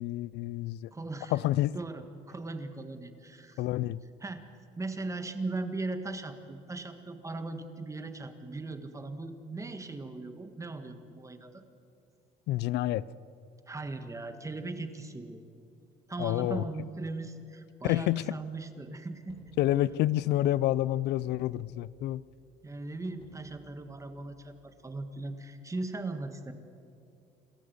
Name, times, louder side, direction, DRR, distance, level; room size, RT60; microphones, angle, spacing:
voice 1, 0.0-0.9 1.3-1.8 3.6-4.0 12.5-13.1 16.2-16.6 17.8-18.2 19.6-22.2, left 14 dB, 80° left, 20 dB, 0.6 m, -28 dB
voice 2, 0.9-1.3 1.7-3.6 4.2-4.4 4.8-11.6 13.7-15.4 16.1-19.4 22.6-26.5, right 2 dB, 20° right, 8 dB, 1.7 m, -38 dB
sound 1, 19.3-25.3, equal, 35° left, 5.8 m, -60 dB
28.0 x 13.5 x 8.1 m, 2.6 s
cardioid pair, 110°, 17 cm